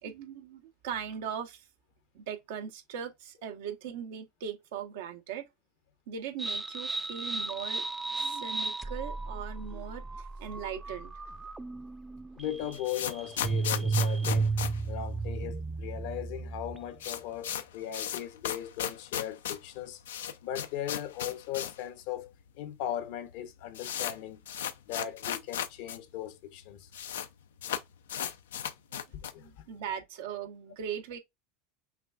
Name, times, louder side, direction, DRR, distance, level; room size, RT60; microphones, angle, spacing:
voice 1, 0.0-1.7 2.1-5.5 6.1-7.8 8.1-11.1 29.4-31.2, right 8 dB, 75° right, 0.9 m, -39 dB
sound 1, 6.4-17.0, right 3 dB, 15° right, 0.4 m, -34 dB
voice 2, 12.3-14.5 14.9-20.0 20.4-24.4 24.9-26.9 29.1-29.6, left 11 dB, 65° left, 0.8 m, -38 dB
sound 2, 12.5-15.7 16.0-16.1 16.3-16.4 16.7-21.9 22.2-22.3 23.0-23.1 23.3-26.0 26.2-26.3 26.5-27.3 27.6-29.5, left 9 dB, 90° left, 0.4 m, -36 dB
5.8 x 2.4 x 2.3 m
hypercardioid pair, 105°, 0 cm